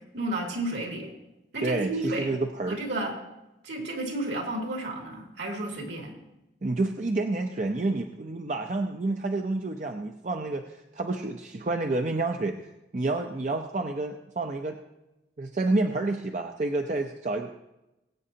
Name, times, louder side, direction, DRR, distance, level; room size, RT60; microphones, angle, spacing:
voice 1, 0.1-1.1 1.5-2.3 2.7-3.1 3.6-6.1, right 1 dB, 70° right, 0 dB, 2.8 m, -32 dB
voice 2, 1.6-2.8 6.6-12.7 12.9-14.8 15.4-17.5, right 2 dB, 40° right, 4 dB, 0.6 m, -29 dB
21.5 x 8.7 x 2.8 m, 0.94 s
head